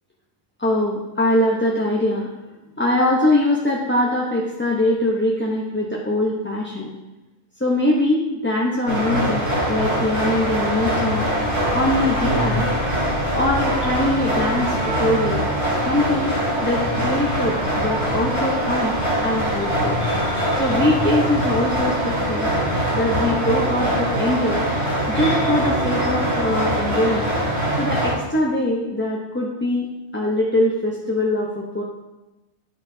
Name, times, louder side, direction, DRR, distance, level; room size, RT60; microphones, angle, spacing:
voice 1, 0.6-2.3 2.8-6.9 7.6-11.3 11.7-12.7 13.3-15.4 15.9-18.9 19.2-20.0 20.6-22.5 22.9-24.7 25.1-27.3 27.8-29.9 30.1-31.8, left 1 dB, 15° left, -3 dB, 0.6 m, -22 dB
sound 1, 8.9-28.1, right 1 dB, 85° right, 2.9 m, -22 dB
10.0 x 6.3 x 2.7 m, 1.0 s
omnidirectional pair, 1.1 m